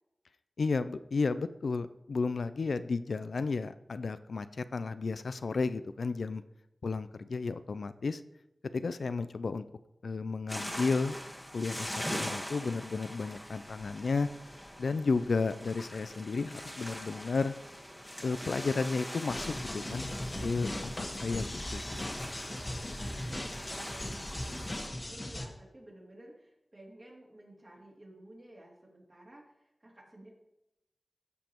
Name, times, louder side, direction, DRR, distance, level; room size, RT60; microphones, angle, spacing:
voice 1, 0.6-6.4 6.8-8.2 8.7-9.6 10.0-11.2 11.5-14.3 14.8-17.5 18.2-20.1 20.4-20.7 21.2-21.9, left 4 dB, 85° left, 13 dB, 0.3 m, -32 dB
sound 1, 10.5-24.9, equal, 10° left, 1.3 m, -43 dB
sound 2, 19.3-25.4, left 1 dB, 35° left, 1.3 m, -38 dB
voice 2, 22.4-30.3, right 1 dB, 40° right, -3 dB, 2.6 m, -53 dB
13.0 x 5.2 x 3.0 m, 0.91 s
wide cardioid pair, 55°, 0 cm